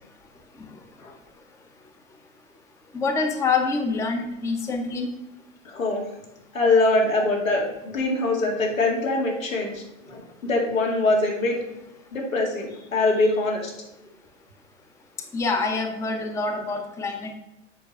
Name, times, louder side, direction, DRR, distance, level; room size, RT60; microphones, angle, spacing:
voice 1, 2.9-5.1 15.3-17.4, left 4 dB, 10° left, 4 dB, 0.6 m, -26 dB
voice 2, 5.6-6.0 6.5-11.6 12.1-13.7, left 2 dB, 85° left, 0 dB, 2.4 m, -23 dB
7.5 x 4.5 x 5.4 m, 0.95 s
hypercardioid pair, 115°, 39 cm